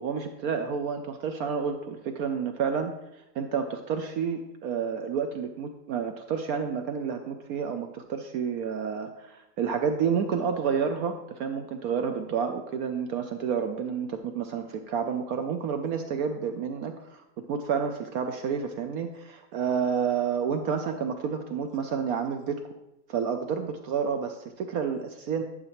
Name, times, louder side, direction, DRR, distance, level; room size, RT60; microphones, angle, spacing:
voice 1, 0.0-2.9 3.3-22.6 23.1-25.4, right 6 dB, 75° right, 6 dB, 0.8 m, -30 dB
11.0 x 6.7 x 3.0 m, 0.91 s
omnidirectional pair, 2.0 m